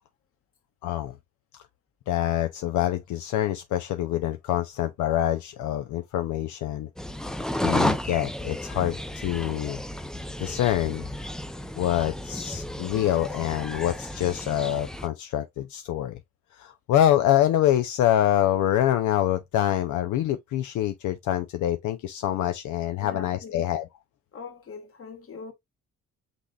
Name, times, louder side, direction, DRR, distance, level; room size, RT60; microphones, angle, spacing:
voice 1, 0.8-1.1 2.1-6.9 7.6-9.8 10.4-11.1 11.8-16.2 16.5-23.9, left 12 dB, 75° left, 0.5 m, -25 dB
sound 1, 7.0-15.1, left 1 dB, ahead, 0.4 m, -32 dB
voice 2, 23.0-23.6 24.3-25.5, left 5 dB, 45° left, 1.5 m, -41 dB
6.1 x 3.4 x 2.3 m
cardioid pair, 90°, 30 cm